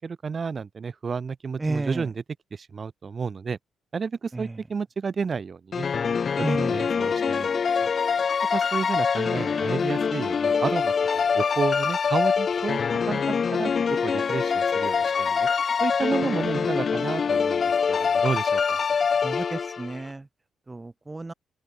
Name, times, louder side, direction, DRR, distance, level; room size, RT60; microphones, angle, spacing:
voice 1, 0.0-2.2 2.5-3.6 3.9-5.9 6.4-7.6 8.5-12.8 13.1-13.7 14.0-15.5 15.8-18.8, right 5 dB, 40° right, 3.7 m, -31 dB
voice 2, 1.6-2.0 6.4-6.7 19.2-20.2 20.7-21.3, right 2 dB, 20° right, 0.6 m, -31 dB
sound 1, 5.7-20.0, left 6 dB, 45° left, 0.4 m, -24 dB
open air
cardioid pair, 90°, 0 cm